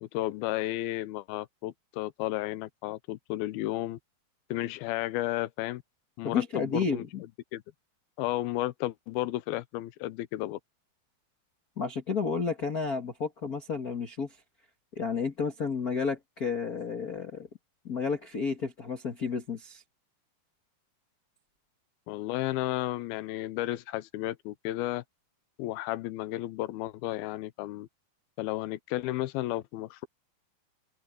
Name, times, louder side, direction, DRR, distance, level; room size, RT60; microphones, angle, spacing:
voice 1, 0.0-4.0 4.5-5.8 6.2-7.0 7.5-7.6 8.2-10.6 22.1-25.0 25.6-27.9 28.4-30.1, left 16 dB, 85° left, 2.6 m, -33 dB
voice 2, 6.2-7.2 11.8-14.3 14.9-17.5 17.8-19.8, left 5 dB, 55° left, 1.0 m, -31 dB
open air
omnidirectional pair, 4.3 m